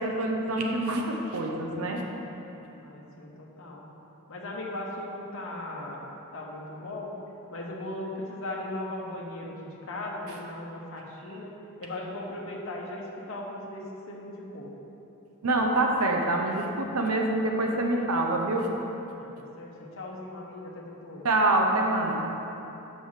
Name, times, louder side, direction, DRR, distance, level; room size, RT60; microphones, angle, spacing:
voice 1, 0.0-2.0 15.4-18.7 21.2-22.2, right 2 dB, 75° right, 1 dB, 0.8 m, -26 dB
voice 2, 2.8-3.8 4.3-6.0 6.3-7.1 7.5-14.7 19.2-19.3 19.6-21.3, left 1 dB, 60° left, -2 dB, 0.9 m, -38 dB
5.6 x 5.2 x 6.4 m, 3.0 s
head